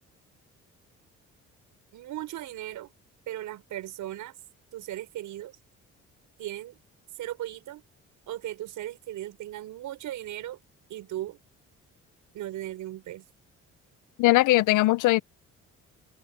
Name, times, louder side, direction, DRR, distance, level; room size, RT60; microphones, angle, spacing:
voice 1, 1.9-2.9 3.3-4.4 4.7-5.6 6.4-6.8 7.1-7.8 8.3-10.6 10.9-11.4 12.3-13.3, right 13 dB, 85° right, 6.1 m, -37 dB
voice 2, 14.2-15.2, left 18 dB, 90° left, 0.6 m, -20 dB
open air
cardioid pair, 90°, 30 cm